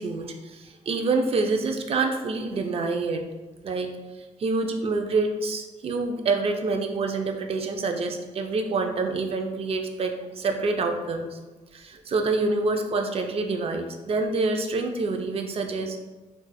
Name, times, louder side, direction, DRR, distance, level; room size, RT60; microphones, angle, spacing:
voice 1, 0.0-3.2 3.6-3.9 4.4-11.4 11.7-16.0, right 3 dB, 45° right, 5 dB, 0.4 m, -27 dB
4.0 x 2.3 x 2.2 m, 1.2 s
cardioid pair, 110°, 14 cm